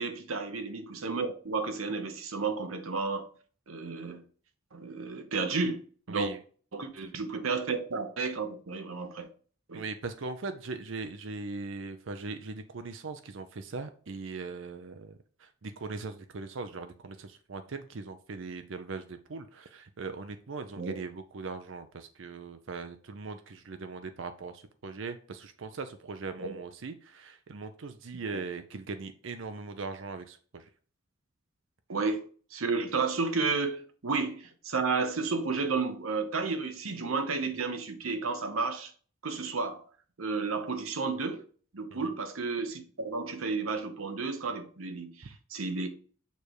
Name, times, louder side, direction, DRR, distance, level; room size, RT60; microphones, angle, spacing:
voice 1, 0.0-3.3 3.7-4.2 4.7-5.8 6.1-6.3 6.7-9.3 9.7-9.8 20.8-21.0 26.4-26.6 31.9-38.9 39.2-39.8 40.2-41.5 41.7-45.9, right 4 dB, 85° right, 1.0 m, -32 dB
voice 2, 6.1-6.4 9.7-30.7 41.9-42.1, right 4 dB, 65° right, 0.6 m, -40 dB
6.6 x 3.4 x 4.8 m
head